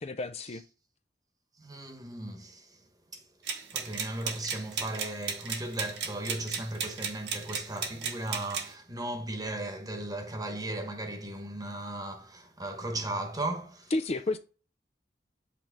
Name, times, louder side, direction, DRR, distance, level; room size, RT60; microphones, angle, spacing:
voice 1, 0.0-0.6 13.9-14.4, left 2 dB, 35° left, 0.4 m, -31 dB
voice 2, 1.6-2.8 3.1-3.2 3.7-13.9, right 1 dB, 20° right, 1.1 m, -36 dB
sound 1, 3.5-8.7, right 6 dB, 80° right, 1.3 m, -35 dB
8.3 x 3.4 x 3.8 m
head